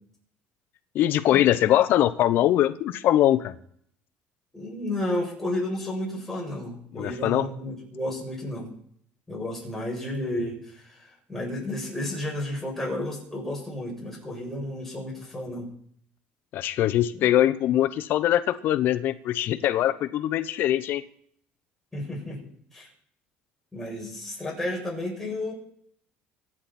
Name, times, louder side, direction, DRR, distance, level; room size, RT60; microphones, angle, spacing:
voice 1, 0.9-3.5 6.9-7.5 16.5-21.0, left 12 dB, 60° left, 13 dB, 0.9 m, -22 dB
voice 2, 4.5-8.7 9.3-15.7 17.1-17.3 21.9-22.4 22.7-22.9 23.7-25.5, left 1 dB, 5° left, -3 dB, 7.8 m, -32 dB
24.5 x 9.9 x 4.4 m, 0.66 s
cardioid pair, 125°, 4 cm